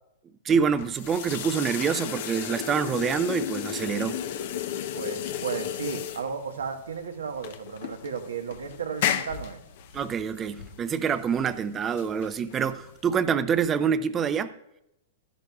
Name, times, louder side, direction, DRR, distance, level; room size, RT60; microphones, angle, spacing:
voice 1, 0.4-4.2 9.9-14.6, right 7 dB, 25° right, 13 dB, 0.7 m, -26 dB
sound 1, 0.7-13.1, left 10 dB, 60° left, 0.8 m, -34 dB
voice 2, 4.9-9.6, right 6 dB, 85° right, 6 dB, 1.3 m, -34 dB
13.0 x 11.0 x 2.4 m, 0.85 s
hypercardioid pair, 120°, 0 cm